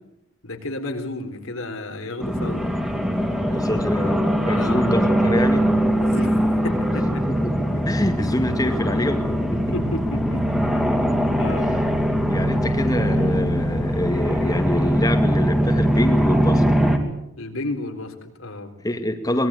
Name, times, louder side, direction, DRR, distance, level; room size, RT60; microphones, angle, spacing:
voice 1, 0.4-2.6 4.5-4.8 6.0-6.4 6.6-7.2 9.7-10.4 10.7-11.8 17.4-18.7, left 2 dB, 80° left, 5 dB, 4.0 m, -32 dB
sound 1, 2.2-17.0, equal, 5° right, 2.9 m, -21 dB
voice 2, 3.5-5.7 7.3-9.6 11.7-11.8 12.3-16.6 18.8-19.5, equal, 15° left, 5 dB, 2.1 m, -25 dB
24.0 x 21.0 x 8.4 m, 0.81 s
head